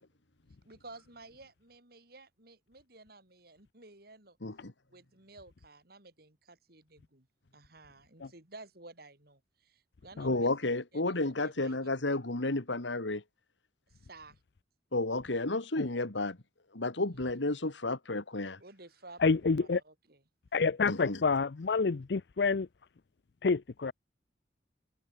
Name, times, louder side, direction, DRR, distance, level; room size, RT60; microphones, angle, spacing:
voice 1, 0.6-4.4 4.9-7.3 7.5-10.5 10.9-11.9 13.9-14.4 18.6-19.2 19.6-20.2, right 2 dB, 55° right, 5.4 m, -53 dB
voice 2, 4.4-4.7 10.2-13.2 14.9-16.4 16.7-18.6 20.9-21.2, left 2 dB, 85° left, 2.1 m, -32 dB
voice 3, 19.2-19.8 20.5-22.7 23.4-23.9, left 4 dB, 65° left, 0.5 m, -28 dB
head